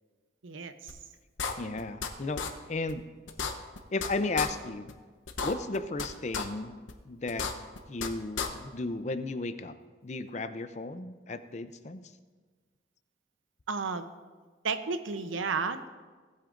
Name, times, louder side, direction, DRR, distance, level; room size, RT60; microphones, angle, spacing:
voice 1, 0.4-1.0 13.7-14.1 14.6-15.9, right 4 dB, 85° right, 10 dB, 0.7 m, -32 dB
sound 1, 0.9-1.0 1.4-2.1 2.4-2.5 2.9-3.0 3.3-4.1 4.4-4.5 4.9-5.0 5.3-6.1 6.3-6.4 6.9-7.0 7.3-8.1 8.4-8.5, left 5 dB, 80° left, 0.8 m, -32 dB
voice 2, 1.6-3.0 3.9-4.9 5.4-6.7 7.1-7.5 7.9-9.7 10.0-12.1, left 3 dB, 35° left, 10 dB, 0.5 m, -34 dB
17.5 x 8.5 x 2.5 m, 1.4 s
head